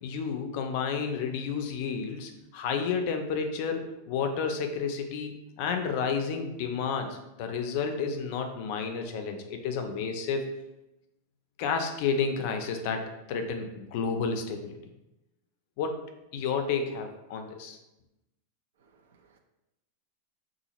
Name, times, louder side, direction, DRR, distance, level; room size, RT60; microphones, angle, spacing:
voice 1, 0.0-10.4 11.6-14.7 15.8-16.0 16.3-17.8, left 5 dB, 40° left, 6 dB, 0.4 m, -31 dB
voice 2, 18.8-19.4, right 5 dB, 85° right, 4 dB, 0.5 m, -64 dB
3.9 x 2.4 x 2.9 m, 0.93 s
supercardioid pair, 175°, 0 cm